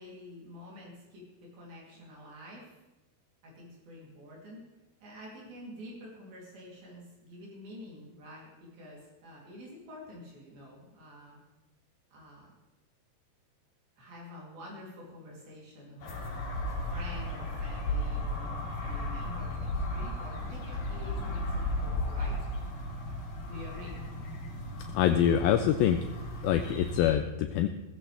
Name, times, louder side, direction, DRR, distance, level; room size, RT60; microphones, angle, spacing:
voice 1, 0.0-2.8 3.4-4.6 5.0-11.4 12.1-12.5 14.0-16.2 16.5-22.4 23.4-24.0, left 1 dB, 65° right, -4 dB, 5.0 m, -48 dB
sound 1, 16.0-27.1, left 1 dB, 60° left, 5.0 m, -35 dB
voice 2, 24.9-26.0 26.4-27.7, left 10 dB, 80° left, 7 dB, 2.2 m, -25 dB
17.0 x 15.5 x 3.5 m, 1.0 s
omnidirectional pair, 4.7 m